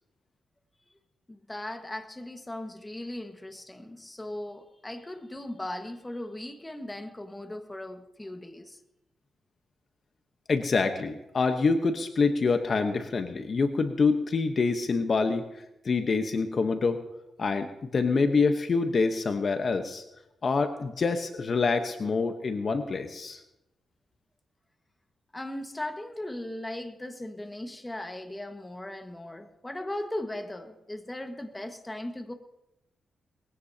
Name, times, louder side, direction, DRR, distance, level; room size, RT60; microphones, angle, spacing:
voice 1, 1.3-8.8 25.3-32.3, left 1 dB, 15° left, 6 dB, 1.6 m, -38 dB
voice 2, 10.5-15.4 15.8-17.0 17.4-20.0 20.4-23.4, left 4 dB, 50° left, 6 dB, 1.1 m, -26 dB
21.0 x 16.5 x 2.9 m, 0.92 s
cardioid pair, 80°, 0 cm